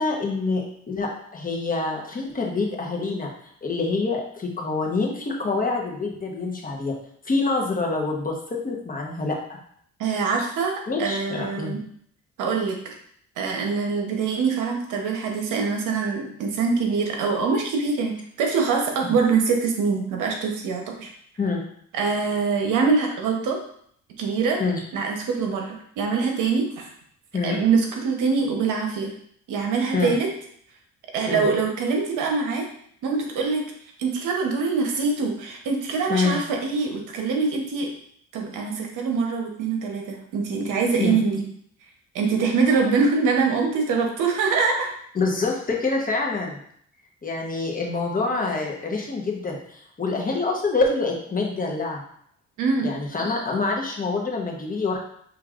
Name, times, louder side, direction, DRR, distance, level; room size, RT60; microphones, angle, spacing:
voice 1, 0.0-3.3 3.6-6.9 7.2-9.6 10.9-11.7 19.0-19.2 21.4-21.6 24.6-24.8 27.3-27.6 29.9-30.2 31.3-31.5 36.1-36.4 41.0-41.2 45.1-46.6 47.2-52.0 52.8-55.0, left 3 dB, 30° left, 0 dB, 1.1 m, -26 dB
voice 2, 10.0-10.7 11.0-11.8 12.4-12.9 13.4-21.1 21.9-23.6 24.2-24.6 24.9-26.9 27.4-29.1 29.5-30.3 31.1-32.7 33.0-33.7 34.0-37.9 38.3-41.4 42.1-44.9 52.6-52.9, right 4 dB, 90° right, 2 dB, 1.0 m, -24 dB
6.2 x 3.1 x 2.5 m, 0.66 s
cardioid pair, 90°, 30 cm